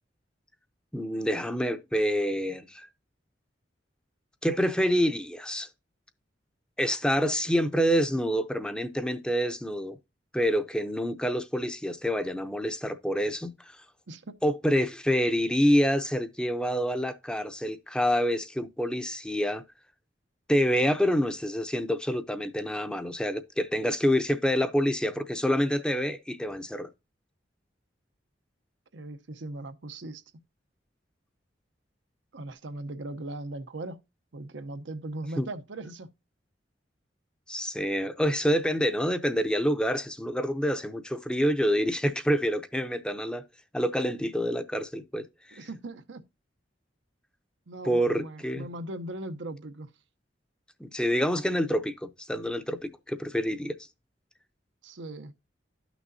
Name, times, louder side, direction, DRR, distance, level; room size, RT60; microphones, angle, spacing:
voice 1, 0.9-2.9 4.4-5.7 6.8-10.0 10.3-13.8 14.4-19.6 20.5-26.9 35.4-35.5 37.5-43.4 43.7-45.6 47.8-48.7 50.8-53.7, equal, 5° left, 0.6 m, -27 dB
voice 2, 14.1-14.4 28.9-30.2 32.3-34.0 34.3-36.1 45.5-46.2 47.7-49.9 54.8-55.3, right 1 dB, 90° right, 0.8 m, -39 dB
12.0 x 6.1 x 2.6 m
head